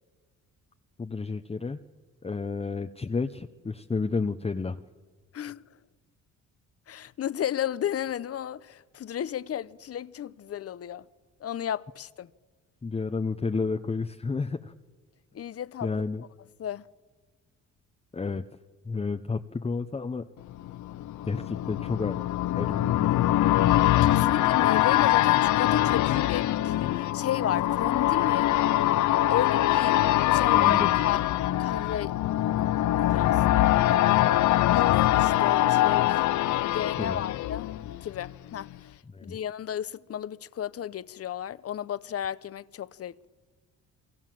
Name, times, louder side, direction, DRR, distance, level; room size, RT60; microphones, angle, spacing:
voice 1, 1.0-1.8 2.2-4.8 12.8-14.7 15.8-16.2 18.1-18.4 18.8-20.3 21.3-22.2 22.5-23.3 30.5-30.9 36.9-37.2 39.1-39.4, left 4 dB, 20° left, 0.9 m, -31 dB
voice 2, 6.9-11.1 11.4-12.3 15.3-15.9 16.6-16.8 24.0-28.5 29.3-30.0 30.3-31.2 31.6-32.1 33.0-34.3 34.7-36.2 36.6-37.7 38.0-39.0 39.2-43.3, left 10 dB, 50° left, 0.9 m, -33 dB
sound 1, 20.5-38.3 38.7-38.8, left 14 dB, 75° left, 0.8 m, -23 dB
29.5 x 23.0 x 7.7 m
cardioid pair, 90°, 30 cm